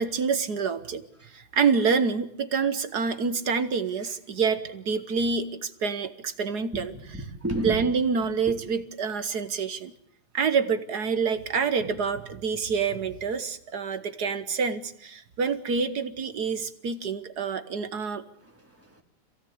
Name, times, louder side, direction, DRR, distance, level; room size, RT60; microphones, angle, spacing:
voice 1, 0.0-6.9 7.6-9.9 10.3-18.2, right 5 dB, 55° right, 11 dB, 1.5 m, -27 dB
voice 2, 6.7-7.8 8.5-8.6 18.4-19.0, right 1 dB, 5° right, 2 dB, 2.9 m, -33 dB
27.0 x 17.0 x 8.6 m, 0.76 s
omnidirectional pair, 2.3 m